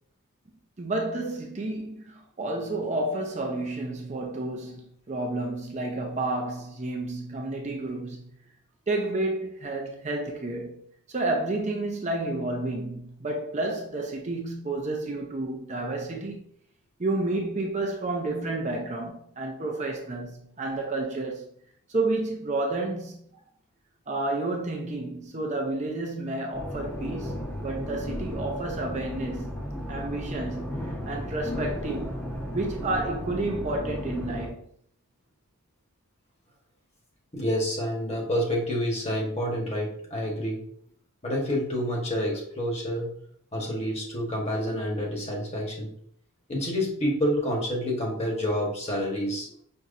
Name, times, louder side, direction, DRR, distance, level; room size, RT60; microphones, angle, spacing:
voice 1, 0.8-8.2 8.9-10.7 11.1-16.4 17.0-21.5 21.9-23.2 24.1-27.3 27.6-29.6 29.9-32.2 32.5-34.6, right 2 dB, 30° right, 0.5 m, -30 dB
sound 1, 26.5-34.5, equal, 10° left, 0.7 m, -34 dB
voice 2, 37.3-40.6 41.2-43.1 43.5-45.9 46.5-49.5, equal, 30° left, 1.1 m, -28 dB
5.4 x 2.9 x 2.5 m
head